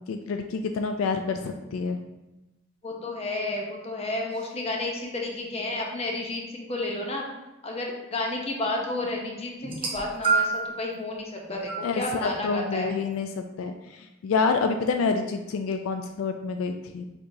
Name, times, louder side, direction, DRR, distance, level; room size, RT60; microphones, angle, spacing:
voice 1, 0.1-2.0 11.8-13.3 13.6-13.7 14.2-17.0, left 4 dB, 80° left, 6 dB, 0.3 m, -27 dB
voice 2, 2.8-7.3 7.6-12.9, left 2 dB, 30° left, 0 dB, 0.7 m, -31 dB
sound 1, 9.6-10.8 11.7-11.9 12.9-13.0, right 4 dB, 25° right, 0.8 m, -26 dB
4.6 x 3.7 x 2.6 m, 0.99 s
head